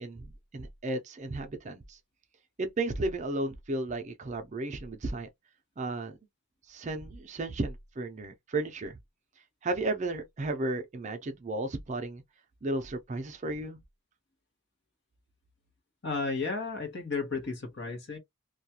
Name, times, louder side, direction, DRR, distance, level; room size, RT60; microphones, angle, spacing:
voice 1, 0.0-2.0 2.6-5.3 5.8-6.2 6.7-9.0 9.6-12.2 12.6-13.8, right 2 dB, 35° right, 0.5 m, -34 dB
voice 2, 16.0-18.2, left 4 dB, 60° left, 0.9 m, -33 dB
2.3 x 2.3 x 2.7 m
head